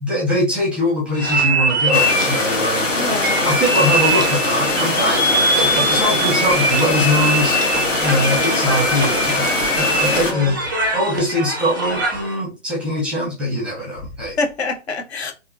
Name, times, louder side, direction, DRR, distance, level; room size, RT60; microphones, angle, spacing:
voice 1, 0.0-3.1 3.4-7.6 8.0-10.6 10.9-14.4, left 1 dB, 5° right, 0.8 m, -22 dB
sound 1, 1.1-12.3, right 1 dB, 20° right, 0.4 m, -22 dB
sound 2, 1.9-10.3, left 2 dB, 85° left, 1.4 m, -21 dB
voice 2, 2.9-3.4 8.2-8.7 10.1-10.6 14.4-15.3, left 2 dB, 60° left, 0.9 m, -26 dB
3.5 x 2.6 x 2.4 m
figure-of-eight pair, 135°, 37 cm